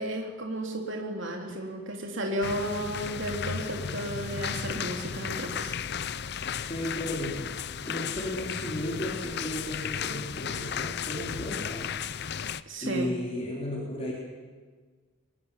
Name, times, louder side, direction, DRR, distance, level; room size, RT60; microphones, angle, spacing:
voice 1, 0.0-5.7 12.7-13.1, right 1 dB, 60° right, 2 dB, 2.8 m, -33 dB
sound 1, 2.4-12.6, left 7 dB, 50° left, 0.6 m, -34 dB
voice 2, 6.6-11.9 12.2-12.4 12.8-14.1, left 1 dB, 30° left, -4 dB, 3.9 m, -34 dB
22.0 x 20.5 x 7.2 m, 1.5 s
head